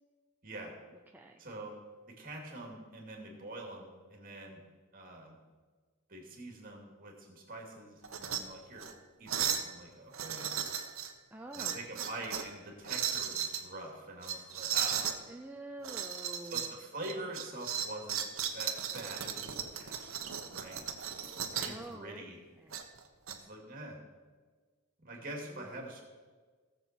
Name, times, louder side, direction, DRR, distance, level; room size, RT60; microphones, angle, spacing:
voice 1, 0.4-0.8 1.4-1.8 2.1-4.6 4.9-5.4 6.1-8.9 9.2-10.5 11.5-15.0 16.5-18.2 18.5-20.8 21.1-22.4 23.3-24.0 25.0-26.0, right 1 dB, 40° right, 1 dB, 2.6 m, -45 dB
sound 1, 8.0-8.4 8.8-8.9 9.3-9.7 10.1-11.1 11.5-12.5 12.8-13.6 14.2-15.2 15.8-16.7 17.0-21.8 22.7-23.4, right 9 dB, 70° right, 1.0 m, -36 dB
voice 2, 11.3-11.9 15.3-16.7 21.6-22.2 22.6-22.8 25.5-25.8, right 1 dB, 10° right, 1 dB, 0.5 m, -47 dB
18.0 x 7.3 x 4.5 m, 1.5 s
head